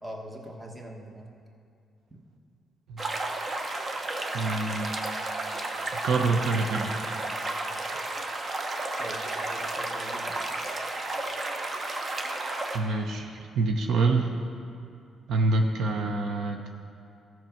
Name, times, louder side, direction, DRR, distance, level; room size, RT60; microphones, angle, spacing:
voice 1, 0.0-1.3 2.1-2.2 9.0-10.4, right 1 dB, 15° right, 1 dB, 1.3 m, -42 dB
sound 1, 3.0-12.8, right 2 dB, 35° right, 0.9 m, -32 dB
voice 2, 4.3-5.0 6.0-6.9 12.7-14.3 15.3-16.7, right 3 dB, 70° right, 3 dB, 0.7 m, -26 dB
13.5 x 5.9 x 4.5 m, 2.4 s
cardioid pair, 90°, 0 cm